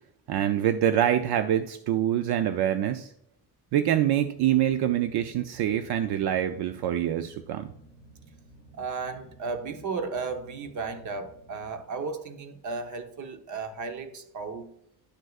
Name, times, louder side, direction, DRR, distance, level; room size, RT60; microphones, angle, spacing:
voice 1, 0.3-3.1 3.7-7.7, right 11 dB, 75° right, 0.6 m, -25 dB
sound 1, 4.0-12.4, right 1 dB, 25° right, 1.6 m, -54 dB
voice 2, 8.8-14.7, right 4 dB, 50° right, 1.0 m, -34 dB
11.5 x 6.3 x 2.4 m
cardioid pair, 160°, 39 cm